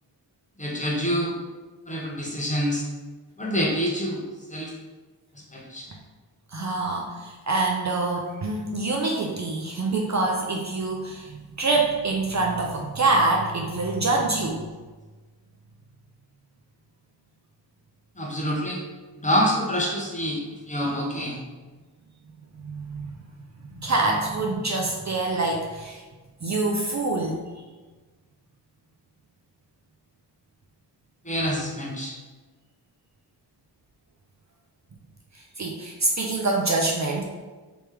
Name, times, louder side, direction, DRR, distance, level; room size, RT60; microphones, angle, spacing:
voice 1, 0.6-1.3 1.9-2.9 3.4-4.2 4.5-4.7 5.3-5.9 18.2-18.8 19.2-21.4 31.2-32.1, equal, 15° left, -3 dB, 0.8 m, -26 dB
voice 2, 6.5-14.7 22.6-23.2 23.8-26.0 26.4-27.4 35.6-37.2, right 3 dB, 40° right, 0 dB, 0.5 m, -25 dB
3.4 x 3.0 x 3.3 m, 1.3 s
wide cardioid pair, 85°, 43 cm